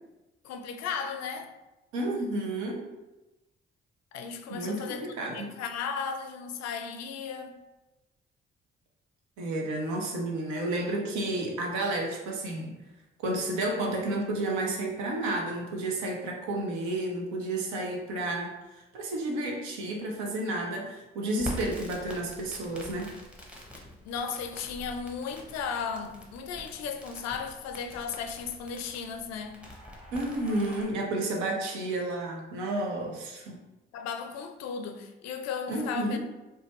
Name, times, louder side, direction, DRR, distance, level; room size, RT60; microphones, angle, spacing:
voice 1, 0.4-1.5 4.1-7.6 24.1-29.5 33.9-36.2, left 6 dB, 60° left, 0.4 m, -35 dB
voice 2, 1.9-2.9 4.5-5.5 9.4-12.7 13.2-23.1 30.1-33.6 35.7-36.2, right 2 dB, 70° right, 0.7 m, -31 dB
Crackle, 21.4-30.8, left 1 dB, 5° right, 0.8 m, -45 dB
2.6 x 2.2 x 3.1 m
hypercardioid pair, 40°, 30 cm